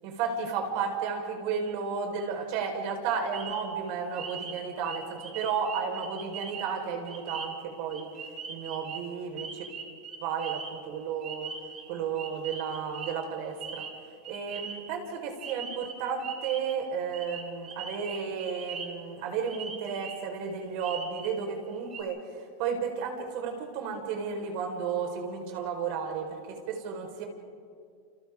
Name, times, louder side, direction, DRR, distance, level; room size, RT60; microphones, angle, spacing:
voice 1, 0.0-8.1 8.5-9.7 10.2-11.5 11.9-13.9 14.3-27.2, right 6 dB, 55° right, 3 dB, 4.5 m, -33 dB
sound 1, 3.3-15.1 15.4-16.8 17.1-19.1 19.5-20.3 20.8-21.4 21.7-22.0, right 5 dB, 30° right, 3.2 m, -41 dB
30.0 x 28.5 x 3.7 m, 2.4 s
supercardioid pair, 145°, 0 cm